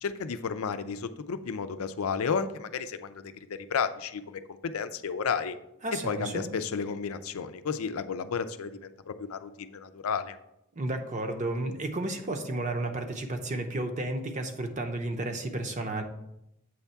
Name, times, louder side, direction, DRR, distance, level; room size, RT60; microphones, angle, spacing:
voice 1, 0.0-5.6 6.1-10.4, left 6 dB, 90° left, 11 dB, 0.5 m, -32 dB
voice 2, 5.8-6.5 10.8-16.0, right 2 dB, 35° right, 4 dB, 0.7 m, -32 dB
7.8 x 3.5 x 5.6 m, 0.84 s
head